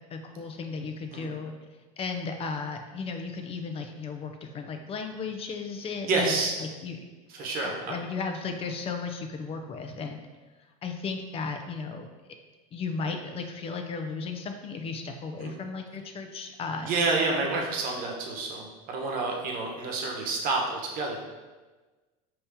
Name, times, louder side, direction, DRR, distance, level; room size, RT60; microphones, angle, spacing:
voice 1, 0.1-1.5 2.0-7.0 7.6-10.2 10.8-12.1 12.7-16.9 17.5-17.6, left 4 dB, 30° left, 5 dB, 0.5 m, -35 dB
voice 2, 6.1-6.5 7.3-7.9 15.4-15.5 16.9-21.2, right 3 dB, 50° right, 0 dB, 1.1 m, -29 dB
5.3 x 2.9 x 3.5 m, 1.3 s
supercardioid pair, 115°, 18 cm